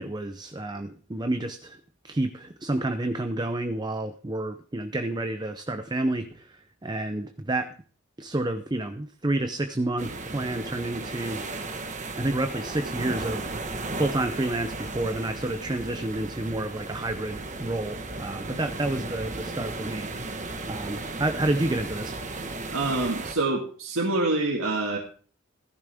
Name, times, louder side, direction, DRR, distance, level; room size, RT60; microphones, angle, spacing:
voice 1, 0.0-7.7 8.2-11.4 12.1-13.5 14.0-20.1 20.7-22.2, right 2 dB, 20° right, 8 dB, 0.6 m, -29 dB
sound 1, 10.0-23.4, right 2 dB, 35° right, 1.4 m, -35 dB
voice 2, 22.7-25.0, right 2 dB, 85° right, 0 dB, 2.0 m, -26 dB
15.5 x 13.5 x 3.6 m, 0.43 s
head